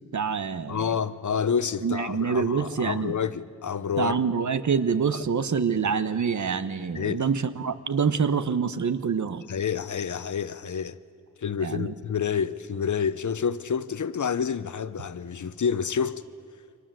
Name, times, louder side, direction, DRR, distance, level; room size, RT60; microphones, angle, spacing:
voice 1, 0.1-0.9 1.8-3.2 4.0-9.4 11.6-11.9, right 6 dB, 70° right, 1.2 m, -26 dB
voice 2, 0.7-4.2 6.9-7.2 9.5-11.0 11.4-16.2, left 7 dB, 70° left, 0.9 m, -28 dB
29.5 x 25.0 x 7.7 m
wide cardioid pair, 135°, 31 cm